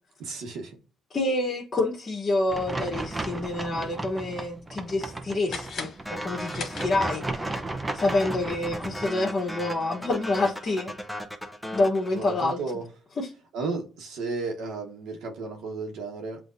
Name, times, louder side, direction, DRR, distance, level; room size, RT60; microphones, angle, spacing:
voice 1, 0.2-0.8 12.1-12.9 13.5-16.4, right 3 dB, 85° right, 1.2 m, -33 dB
voice 2, 1.1-7.6 7.9-10.9 11.7-12.6 13.2-13.3, left 2 dB, 40° left, 1.0 m, -27 dB
sound 1, 2.5-9.1, right 2 dB, 20° right, 0.7 m, -35 dB
sound 2, 5.5-7.4, left 5 dB, 60° left, 1.2 m, -39 dB
sound 3, 6.0-12.7, equal, ahead, 0.9 m, -37 dB
7.7 x 2.6 x 2.6 m
cardioid pair, 90°, 0 cm